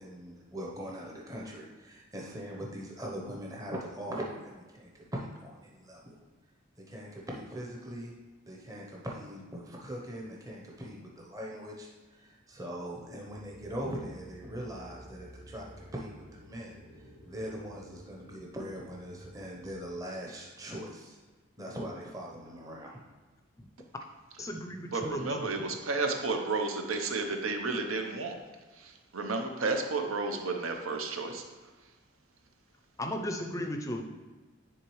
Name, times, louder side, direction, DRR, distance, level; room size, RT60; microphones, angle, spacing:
voice 1, 0.0-6.1 6.8-8.1 8.4-16.8 17.3-21.2 21.6-23.0, equal, 15° right, -2 dB, 0.7 m, -41 dB
sound 1, 13.3-19.8, equal, 60° right, 1.7 m, -52 dB
voice 2, 24.4-25.5 33.0-34.0, left 1 dB, 15° left, 4 dB, 0.4 m, -35 dB
voice 3, 24.9-28.4 28.8-31.4, right 3 dB, 85° right, 4 dB, 0.8 m, -32 dB
10.0 x 3.7 x 3.1 m, 1.3 s
head